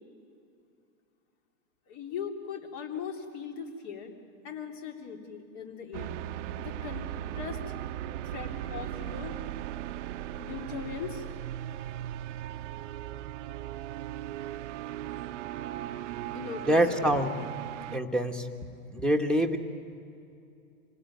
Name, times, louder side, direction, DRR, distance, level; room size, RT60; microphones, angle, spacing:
voice 1, 1.9-4.1 4.4-6.2 6.6-7.0 7.3-7.6 8.2-9.4 10.4-11.3 16.3-17.0, left 6 dB, 45° left, 3 dB, 3.3 m, -39 dB
sound 1, 5.9-18.0, right 12 dB, 60° right, 0.8 m, -38 dB
voice 2, 16.7-17.3 17.9-18.5 18.9-19.6, right 1 dB, ahead, 2 dB, 1.6 m, -25 dB
27.5 x 18.0 x 9.5 m, 2.6 s
hypercardioid pair, 115°, 41 cm